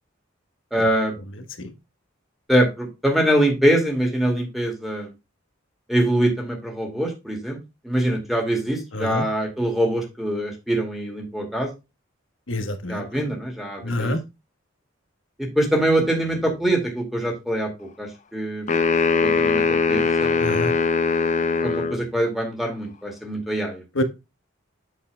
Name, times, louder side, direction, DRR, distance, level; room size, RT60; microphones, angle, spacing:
voice 1, 0.7-1.1 2.5-5.1 5.9-7.6 7.8-11.7 12.9-14.2 15.4-18.7 19.2-20.6 21.6-23.8, right 1 dB, ahead, 2.2 m, -23 dB
voice 2, 8.9-9.2 12.5-13.0 13.8-14.2 20.4-20.7 23.9-24.0, left 1 dB, 80° left, 1.3 m, -26 dB
sound 1, 18.7-22.0, left 4 dB, 40° left, 0.6 m, -21 dB
8.3 x 7.2 x 2.3 m
head